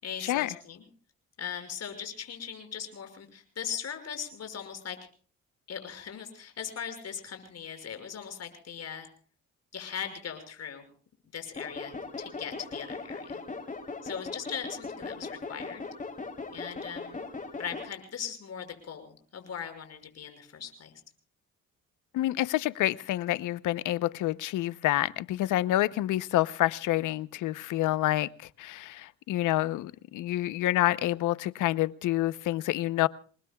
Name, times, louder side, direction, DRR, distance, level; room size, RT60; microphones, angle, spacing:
voice 1, 0.0-0.8 1.4-5.0 5.7-9.1 9.7-10.9 11.3-13.4 14.0-15.8 16.5-17.2 17.6-20.9, left 7 dB, 55° left, 7 dB, 6.0 m, -39 dB
sound 1, 11.6-17.9, left 3 dB, 25° left, 3.6 m, -39 dB
voice 2, 22.1-33.1, left 15 dB, 85° left, 17 dB, 0.8 m, -28 dB
28.0 x 20.0 x 2.3 m, 0.43 s
cardioid pair, 90°, 30 cm